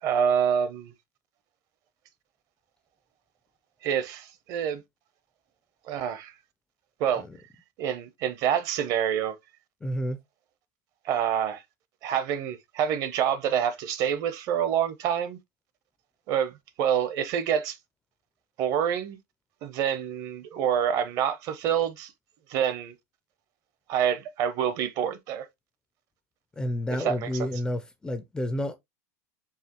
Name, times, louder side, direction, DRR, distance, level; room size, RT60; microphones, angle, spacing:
voice 1, 0.0-0.9 3.8-4.8 5.9-6.3 7.0-7.2 7.8-9.3 11.0-11.6 12.0-15.4 16.3-17.8 18.6-19.2 19.6-22.1 22.5-22.9 23.9-25.5 27.0-27.5, right 9 dB, 40° right, 0.6 m, -27 dB
voice 2, 9.8-10.2 26.6-28.7, equal, 10° left, 0.4 m, -30 dB
4.8 x 2.7 x 2.9 m
supercardioid pair, 155°, 9 cm